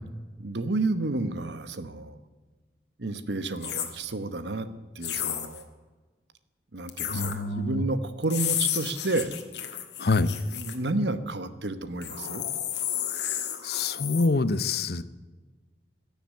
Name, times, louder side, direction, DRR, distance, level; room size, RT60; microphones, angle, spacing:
voice 1, 0.4-2.2 3.0-4.7 4.9-5.7 6.7-9.3 10.5-12.5, right 2 dB, 75° right, 12 dB, 1.1 m, -31 dB
sound 1, 3.6-3.9 5.0-5.6 6.9-7.3 8.2-10.7 12.0-14.3, left 10 dB, 75° left, 1.7 m, -32 dB
voice 2, 7.1-7.8 10.0-10.4 13.6-15.0, left 3 dB, 60° left, 14 dB, 0.7 m, -26 dB
16.5 x 7.1 x 9.5 m, 1.3 s
head